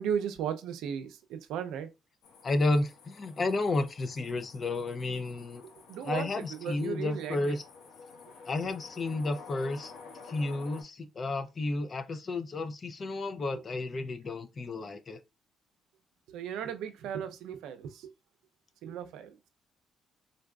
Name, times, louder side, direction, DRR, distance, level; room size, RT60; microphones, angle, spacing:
voice 1, 0.0-1.9 5.9-7.6 16.3-18.1 18.8-19.3, right 8 dB, 90° right, 0.5 m, -36 dB
sound 1, 2.2-10.8, left 4 dB, 90° left, 0.8 m, -51 dB
voice 2, 2.4-5.6 6.0-7.6 8.5-9.9 10.2-15.2, left 2 dB, 40° left, 0.5 m, -32 dB
3.8 x 2.5 x 2.2 m
cardioid pair, 90°, 0 cm